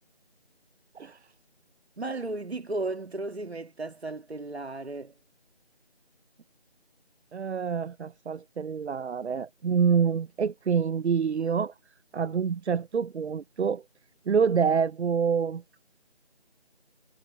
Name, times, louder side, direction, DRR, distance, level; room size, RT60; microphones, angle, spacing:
voice 1, 2.0-5.1, right 2 dB, 70° right, 2.0 m, -35 dB
voice 2, 7.3-11.7 12.1-13.8 14.3-15.6, right 6 dB, 90° right, 0.6 m, -26 dB
figure-of-eight pair, 175°, 33 cm